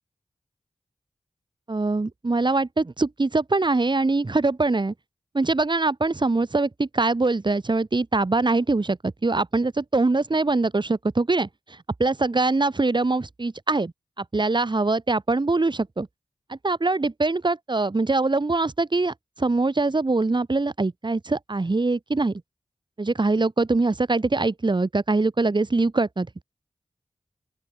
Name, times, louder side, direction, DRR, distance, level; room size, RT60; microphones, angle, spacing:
voice 1, 1.7-4.9 5.3-11.5 12.0-16.1 16.5-22.4 23.0-26.4, right 3 dB, 45° right, 2.5 m, -23 dB
open air
wide cardioid pair, 55°, 11 cm